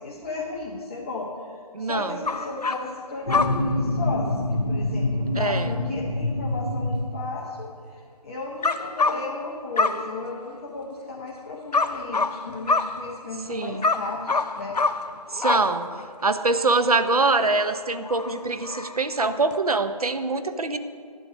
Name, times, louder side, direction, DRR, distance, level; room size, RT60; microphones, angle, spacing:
voice 1, 0.0-14.8, left 3 dB, 20° left, -4 dB, 1.0 m, -35 dB
voice 2, 1.7-2.2 5.4-5.7 13.5-13.8 15.3-15.9 16.2-20.8, right 3 dB, 70° right, 9 dB, 0.9 m, -24 dB
sound 1, 2.3-3.0 3.3-3.8 8.6-9.5 9.8-10.4 11.7-13.5 13.8-16.0 16.5-16.6 17.4-17.5 18.0-19.1 19.5-19.6, left 3 dB, 85° left, 0.7 m, -26 dB
sound 2, 3.3-7.6, left 1 dB, 45° left, 2.0 m, -26 dB
11.5 x 9.7 x 5.1 m, 2.1 s
figure-of-eight pair, 160°, 20 cm